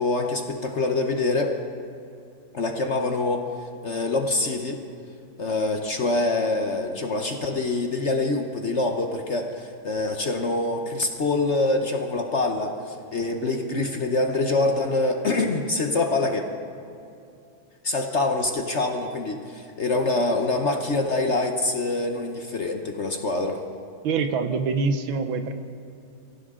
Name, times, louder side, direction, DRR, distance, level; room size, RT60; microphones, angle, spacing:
voice 1, 0.0-1.6 2.5-3.5 3.8-4.8 5.4-16.5 17.8-23.6, left 2 dB, 45° left, 4 dB, 1.0 m, -25 dB
voice 2, 24.0-25.5, right 4 dB, 90° right, 8 dB, 1.8 m, -25 dB
23.5 x 15.5 x 3.7 m, 2.5 s
omnidirectional pair, 2.1 m